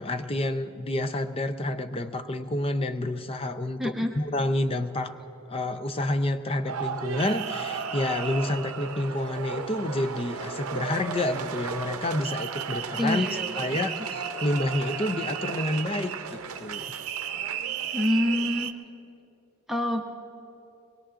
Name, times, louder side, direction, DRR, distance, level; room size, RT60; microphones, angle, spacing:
voice 1, 0.0-5.1 5.5-13.3 13.6-16.9, left 1 dB, 25° left, 10 dB, 0.5 m, -29 dB
voice 2, 3.8-4.1 13.0-13.9 17.9-18.7 19.7-20.0, left 1 dB, ahead, 0 dB, 0.9 m, -27 dB
sound 1, 6.7-18.7, right 7 dB, 75° right, 0.6 m, -34 dB
23.5 x 21.0 x 2.5 m, 2.7 s
head